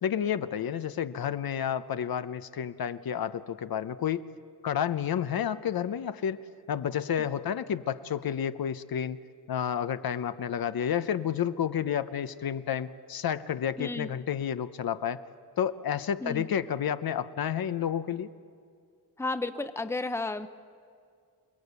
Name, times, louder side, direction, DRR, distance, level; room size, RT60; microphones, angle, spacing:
voice 1, 0.0-4.2 4.6-6.4 6.7-9.2 9.5-15.2 15.6-18.3, left 9 dB, 65° left, 11 dB, 0.8 m, -30 dB
voice 2, 13.8-14.1 16.2-16.5 19.2-20.5, left 2 dB, 5° left, 10 dB, 0.8 m, -32 dB
28.5 x 19.0 x 8.2 m, 2.2 s
wide cardioid pair, 115°, 38 cm